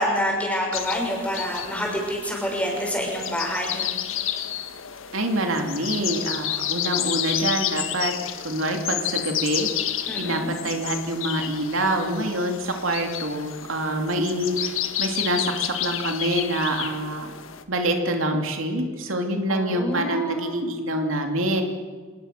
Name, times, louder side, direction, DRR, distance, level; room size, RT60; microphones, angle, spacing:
voice 1, 0.0-3.9 10.1-10.5 19.5-20.6, equal, 5° left, -1 dB, 6.1 m, -27 dB
sound 1, 0.7-17.6, left 10 dB, 75° left, 1.5 m, -31 dB
voice 2, 5.1-8.1 8.4-9.7 10.2-14.7 15.0-17.3 17.7-21.6, right 1 dB, 75° right, 4 dB, 2.8 m, -26 dB
27.0 x 19.5 x 6.7 m, 1.5 s
head